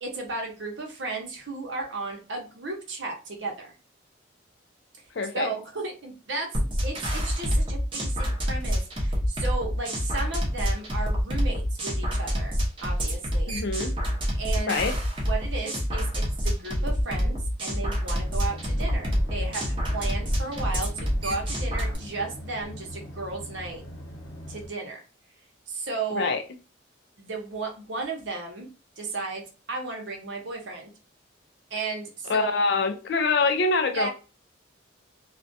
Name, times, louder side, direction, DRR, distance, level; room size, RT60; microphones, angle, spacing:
voice 1, 0.0-3.7 5.3-13.5 14.4-14.8 15.3-23.8 24.5-25.0 25.7-26.3 27.2-28.7 29.0-30.9 31.7-32.7 33.9-34.1, right 3 dB, 70° right, 0.8 m, -34 dB
voice 2, 5.1-5.5 13.5-14.0 14.7-15.0 26.1-26.4 32.2-34.1, left 4 dB, 60° left, 0.4 m, -25 dB
sound 1, 6.5-22.0, equal, 25° right, 0.7 m, -27 dB
sound 2, 18.1-24.7, equal, 85° left, 0.9 m, -41 dB
2.3 x 2.1 x 2.5 m
head